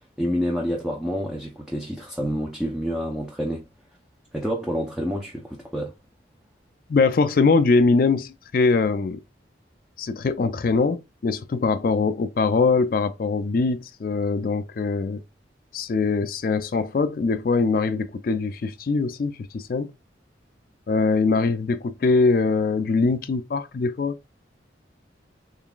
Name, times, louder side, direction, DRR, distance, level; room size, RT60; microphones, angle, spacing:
voice 1, 0.2-3.7 4.3-5.9, equal, 5° right, 0.6 m, -28 dB
voice 2, 6.9-9.2 10.0-15.2 15.7-19.9 20.9-24.2, left 4 dB, 50° left, 0.3 m, -22 dB
3.7 x 3.4 x 2.3 m
head